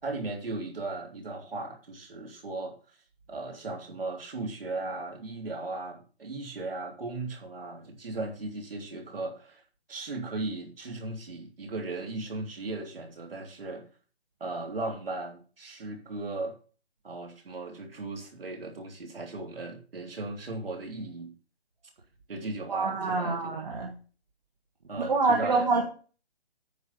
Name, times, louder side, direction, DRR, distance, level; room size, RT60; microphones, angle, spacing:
voice 1, 0.0-2.7 3.3-9.6 9.9-13.8 14.4-16.5 17.0-21.3 22.3-23.4 24.9-25.7, right 2 dB, 60° right, 2 dB, 3.4 m, -37 dB
voice 2, 22.7-23.9 24.9-25.8, right 3 dB, 40° right, -1 dB, 1.7 m, -26 dB
9.3 x 6.2 x 5.4 m, 0.37 s
hypercardioid pair, 180°, 32 cm